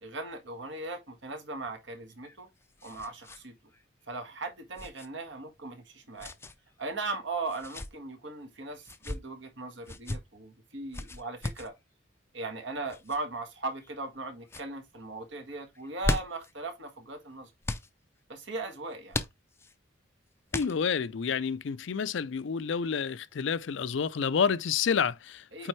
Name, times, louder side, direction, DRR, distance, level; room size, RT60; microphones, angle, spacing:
voice 1, 0.0-2.5 2.8-3.6 4.1-6.3 6.8-11.8 12.3-17.5 18.3-19.2 25.5-25.7, right 3 dB, 65° right, 1.9 m, -38 dB
sound 1, 2.1-3.4 3.7-3.8 4.8-5.1 6.2-6.5 7.5-7.9 8.8-9.2 9.8-10.2 10.9-11.7 12.9-13.2 13.8-14.2 14.4-14.7 15.7-16.5 17.6-17.9 19.1-19.7 20.5-21.0, left 2 dB, 10° left, 0.4 m, -36 dB
voice 2, 20.5-25.7, left 6 dB, 70° left, 0.4 m, -29 dB
8.7 x 3.6 x 3.1 m
head